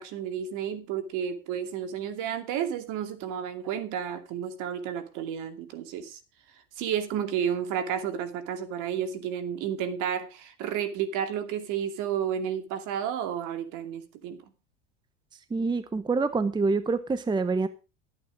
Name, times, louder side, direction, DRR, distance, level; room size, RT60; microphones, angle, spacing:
voice 1, 0.0-6.2 6.8-14.4, right 8 dB, 60° right, 9 dB, 2.6 m, -31 dB
voice 2, 15.5-17.7, right 4 dB, 10° right, 14 dB, 0.8 m, -26 dB
13.0 x 9.0 x 5.0 m, 0.32 s
hypercardioid pair, 100°, 35 cm